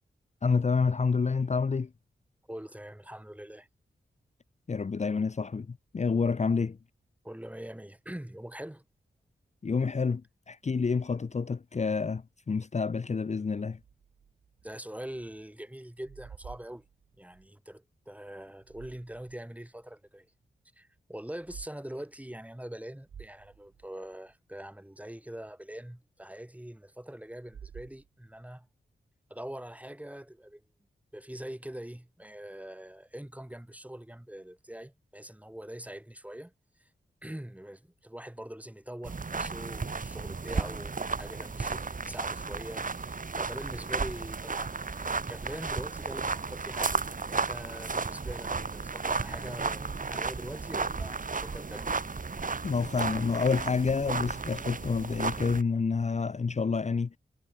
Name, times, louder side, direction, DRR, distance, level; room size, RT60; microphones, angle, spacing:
voice 1, 0.4-1.9 4.7-6.8 9.6-10.2 10.5-13.8 52.6-57.2, left 5 dB, 40° left, 0.7 m, -28 dB
voice 2, 2.5-3.7 7.2-8.8 14.6-16.9 17.2-20.3 20.8-28.7 29.3-30.6 31.1-36.5 36.8-36.9 37.2-52.0, right 1 dB, 5° right, 2.0 m, -43 dB
sound 1, 13.8-15.4 15.7-17.5 18.4-19.5 19.9-20.0 21.3-21.7 22.1-22.3 22.7-22.8 23.0-24.3 27.3-28.5, right 7 dB, 80° right, 1.4 m, -51 dB
sound 2, 39.0-55.6, right 4 dB, 45° right, 1.8 m, -34 dB
cardioid pair, 50°, 19 cm